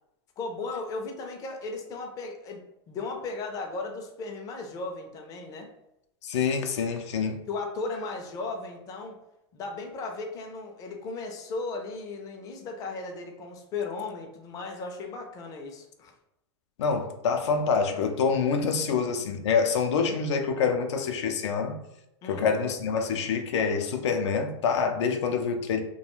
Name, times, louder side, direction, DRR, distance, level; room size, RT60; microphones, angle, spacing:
voice 1, 0.4-2.6 2.9-5.7 7.5-9.2 9.5-16.1 18.7-19.0 22.2-22.5, left 3 dB, 25° left, 2 dB, 0.4 m, -36 dB
voice 2, 6.2-7.4 16.8-21.8 22.3-25.8, left 5 dB, 85° left, 5 dB, 0.4 m, -26 dB
2.3 x 2.2 x 3.0 m, 0.84 s
supercardioid pair, 135°, 14 cm